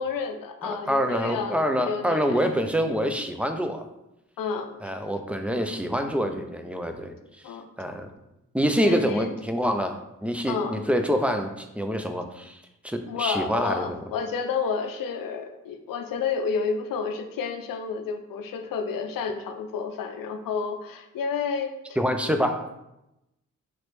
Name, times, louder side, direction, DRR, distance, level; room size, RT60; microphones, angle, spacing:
voice 1, 0.0-2.5 4.4-4.8 7.4-7.7 8.8-9.3 10.5-10.8 13.1-21.8, left 5 dB, 80° left, 7 dB, 0.5 m, -30 dB
voice 2, 0.6-3.8 4.8-7.1 7.8-8.1 8.5-14.0 22.0-22.8, equal, 5° right, 5 dB, 0.4 m, -26 dB
3.2 x 2.9 x 3.0 m, 0.89 s
cardioid pair, 65°, 33 cm